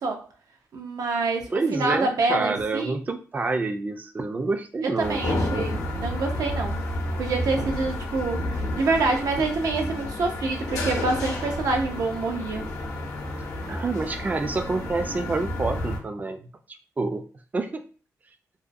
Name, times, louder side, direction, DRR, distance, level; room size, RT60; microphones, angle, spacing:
voice 1, 0.7-2.9 5.0-6.8 7.2-12.7, right 3 dB, 80° right, 3 dB, 0.5 m, -26 dB
voice 2, 1.5-5.2 5.5-5.7 7.6-7.8 13.7-16.4 16.7-17.2 17.5-17.8, right 3 dB, 25° right, 7 dB, 0.3 m, -28 dB
sound 1, 5.0-16.0, left 1 dB, 85° left, 0.7 m, -30 dB
2.6 x 2.2 x 2.5 m, 0.37 s
cardioid pair, 85°, 6 cm